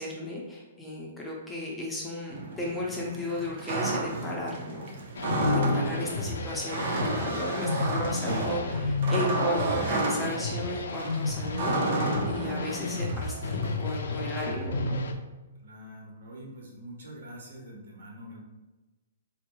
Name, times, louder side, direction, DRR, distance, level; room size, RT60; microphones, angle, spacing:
voice 1, 0.0-4.9 5.5-15.0, left 1 dB, 5° left, -4 dB, 0.4 m, -35 dB
sound 1, 2.3-13.8, right 2 dB, 50° right, 0.6 m, -32 dB
sound 2, 5.2-15.1, left 3 dB, 85° left, 0.4 m, -32 dB
voice 2, 15.6-18.4, equal, 80° right, -2 dB, 1.3 m, -45 dB
4.2 x 2.9 x 2.3 m, 1.1 s
hypercardioid pair, 175°, 0 cm